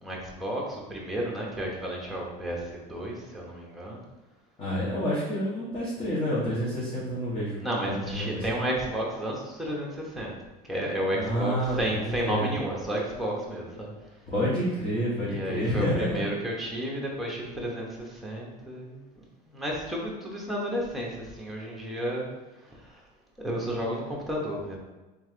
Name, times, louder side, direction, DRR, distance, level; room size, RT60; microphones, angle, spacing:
voice 1, 0.0-4.0 7.6-10.3 10.7-13.9 15.3-22.3 22.8-22.9 23.4-24.8, right 1 dB, ahead, -3 dB, 1.1 m, -32 dB
voice 2, 4.6-7.6 8.0-8.6 11.1-12.5 14.3-16.2, equal, 25° left, -9 dB, 1.5 m, -29 dB
3.6 x 3.4 x 3.3 m, 1.1 s
supercardioid pair, 115°, 21 cm